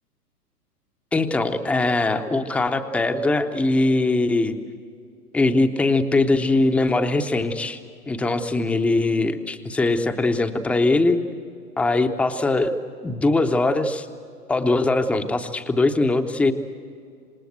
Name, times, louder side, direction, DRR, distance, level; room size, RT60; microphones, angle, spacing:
voice 1, 1.1-4.5 5.3-7.8 8.1-11.2 11.8-12.7 13.0-14.1 14.5-16.5, left 2 dB, 5° left, 8 dB, 0.6 m, -21 dB
26.5 x 19.5 x 7.9 m, 2.3 s
figure-of-eight pair, 120°, 47 cm